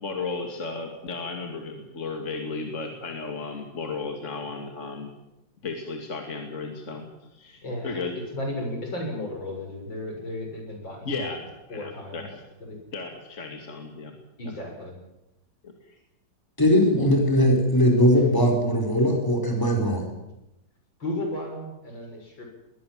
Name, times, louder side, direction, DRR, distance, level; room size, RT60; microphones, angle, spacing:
voice 1, 0.0-5.1 5.6-8.1 11.0-12.4 12.9-14.2 14.4-14.6 15.6-16.0, left 4 dB, 40° left, 3 dB, 2.7 m, -34 dB
voice 2, 7.6-8.0 8.3-11.3 11.7-12.2 12.6-12.8 14.4-14.9 17.0-17.1 18.1-18.2 21.0-22.5, left 1 dB, 90° left, 2 dB, 7.0 m, -34 dB
voice 3, 16.6-20.0, equal, 10° left, 2 dB, 4.8 m, -20 dB
21.0 x 21.0 x 7.6 m, 0.93 s
omnidirectional pair, 2.0 m